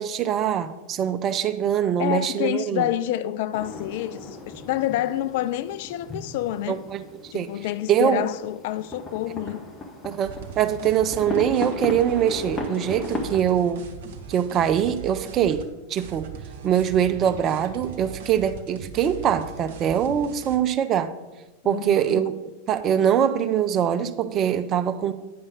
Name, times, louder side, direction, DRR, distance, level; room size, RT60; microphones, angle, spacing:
voice 1, 0.0-2.9 6.7-7.6 7.9-8.2 10.0-13.9 14.3-16.3 16.6-21.1 21.6-22.3 22.7-25.1, right 9 dB, 30° right, 0.5 m, -23 dB
voice 2, 2.0-6.8 7.3-9.6 21.6-22.2, left 13 dB, 50° left, 0.3 m, -28 dB
sound 1, 3.5-13.4, left 2 dB, 15° left, 1.1 m, -36 dB
sound 2, 10.2-15.7 16.0-20.6, right 7 dB, 55° right, 0.9 m, -40 dB
9.4 x 5.5 x 5.2 m
figure-of-eight pair, 90°, 0 cm